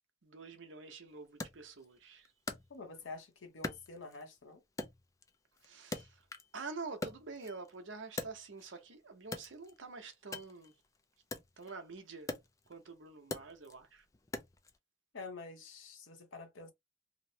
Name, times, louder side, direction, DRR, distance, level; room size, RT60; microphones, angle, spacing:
voice 1, 0.2-2.3 5.6-6.2 6.5-10.7 11.6-12.3 12.7-14.0, right 4 dB, 75° right, 0.7 m, -47 dB
Wood, 1.4-3.2 3.6-4.4 4.8-6.6 6.9-8.8 9.2-14.8, left 2 dB, 15° left, 0.3 m, -44 dB
voice 2, 2.7-4.6 15.1-16.7, left 3 dB, 90° left, 0.8 m, -48 dB
2.9 x 2.0 x 2.7 m
head